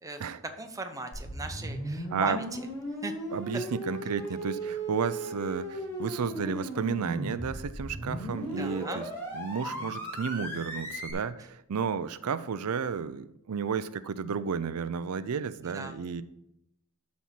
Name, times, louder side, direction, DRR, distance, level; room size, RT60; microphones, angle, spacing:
voice 1, 0.6-2.6 3.0-3.1 8.6-9.0 9.7-9.9 15.7-15.9, right 2 dB, 15° right, 5 dB, 0.8 m, -38 dB
sound 1, 1.1-11.1, right 1 dB, 10° left, 2.7 m, -36 dB
voice 2, 3.3-9.1 9.3-16.2, right 6 dB, 90° right, 13 dB, 0.5 m, -32 dB
12.0 x 4.3 x 6.0 m, 0.80 s
head